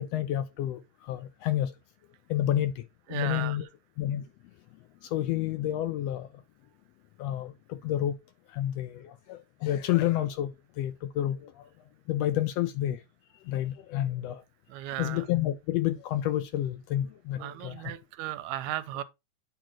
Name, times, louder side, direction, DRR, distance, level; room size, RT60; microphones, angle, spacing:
voice 1, 0.0-1.7 2.3-2.8 3.1-3.7 4.0-4.2 5.0-6.3 7.2-8.2 8.5-11.7 12.1-13.0 13.4-14.4 15.0-17.9, left 12 dB, 75° left, 1.6 m, -30 dB
voice 2, 3.1-3.6 14.7-15.2 17.4-19.0, right 14 dB, 80° right, 1.9 m, -35 dB
8.9 x 3.0 x 6.1 m
omnidirectional pair, 3.3 m